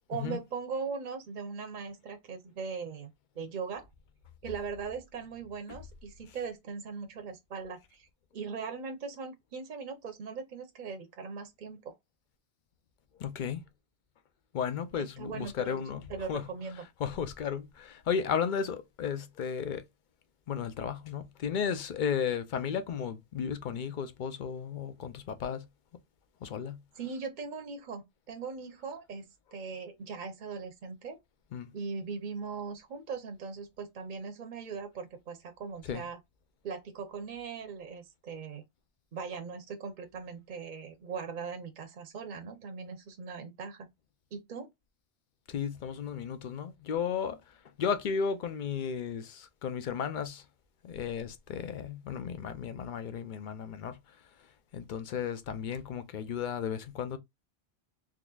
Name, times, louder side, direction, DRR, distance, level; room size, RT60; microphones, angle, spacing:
voice 1, 0.1-3.9 4.4-8.1 8.3-12.0 14.9-15.8 16.1-16.9 27.0-31.2 31.7-36.2 36.6-38.6 39.1-43.9 44.3-44.7, right 5 dB, 50° right, 0.8 m, -40 dB
voice 2, 13.2-13.6 14.5-16.0 16.3-16.4 17.0-19.8 20.5-25.6 26.4-26.8 31.5-31.7 35.9-36.0 45.5-47.4 47.8-50.4 50.8-53.9 54.7-57.2, left 7 dB, 55° left, 0.6 m, -34 dB
3.8 x 3.0 x 2.3 m
omnidirectional pair, 1.1 m